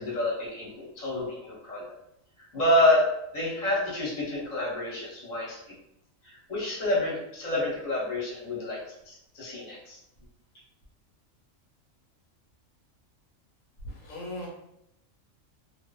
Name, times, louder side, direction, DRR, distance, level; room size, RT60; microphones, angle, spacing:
voice 1, 0.0-1.8 2.5-3.1 3.3-5.6 6.2-8.8 9.0-10.0, left 1 dB, 35° left, -6 dB, 0.9 m, -28 dB
voice 2, 13.8-14.5, left 1 dB, 80° left, -3 dB, 1.1 m, -38 dB
2.5 x 2.3 x 2.2 m, 0.79 s
omnidirectional pair, 1.4 m